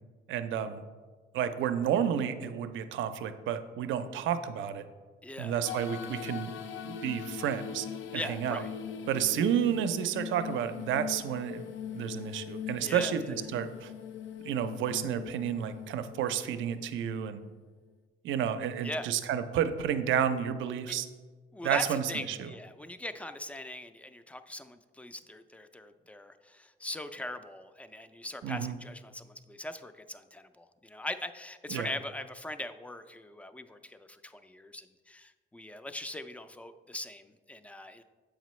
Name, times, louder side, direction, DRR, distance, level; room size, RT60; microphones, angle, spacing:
voice 1, 0.3-0.8 1.3-4.8 5.4-6.5 6.8-7.9 8.1-8.6 9.1-13.9 14.4-17.4 18.2-21.1 21.6-22.5 28.4-28.8 31.7-31.9, right 9 dB, 75° right, 10 dB, 0.5 m, -31 dB
voice 2, 5.2-5.6 8.1-8.7 12.8-13.4 18.8-19.1 20.9-21.0 21.5-38.0, left 1 dB, 5° left, 10 dB, 0.3 m, -41 dB
sound 1, 5.6-17.4, left 8 dB, 75° left, 0.4 m, -41 dB
7.3 x 4.9 x 3.1 m, 1.4 s
cardioid pair, 90°, 20 cm